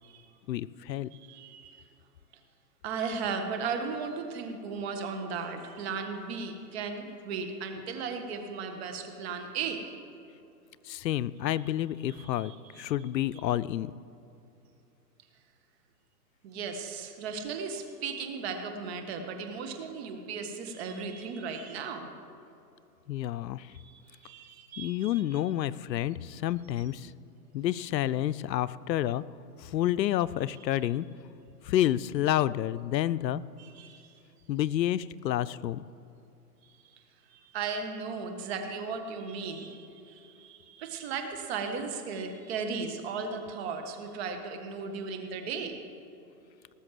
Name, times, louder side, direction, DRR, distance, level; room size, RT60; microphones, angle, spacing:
voice 1, 0.5-1.2 10.8-13.9 23.1-23.7 24.8-27.1 27.5-29.2 29.6-31.1 31.6-33.4 34.5-35.9, left 12 dB, 80° left, 17 dB, 0.6 m, -29 dB
voice 2, 1.1-1.9 2.8-9.8 12.2-12.8 16.4-22.1 23.7-25.1 33.6-34.1 36.6-36.7 37.3-45.8, right 5 dB, 40° right, 5 dB, 1.7 m, -36 dB
18.5 x 6.8 x 7.6 m, 2.8 s
hypercardioid pair, 150°, 50 cm